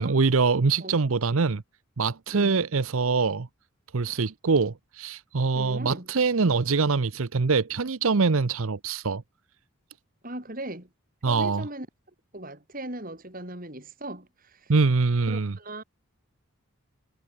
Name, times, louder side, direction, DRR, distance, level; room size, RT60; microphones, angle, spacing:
voice 1, 0.0-1.6 2.0-3.5 3.9-9.2 11.2-11.7 14.7-15.6, right 4 dB, 70° right, 0.7 m, -24 dB
voice 2, 5.5-6.1 10.2-10.9 11.3-11.9 12.3-14.7 15.3-15.8, right 1 dB, 40° right, 5.0 m, -38 dB
head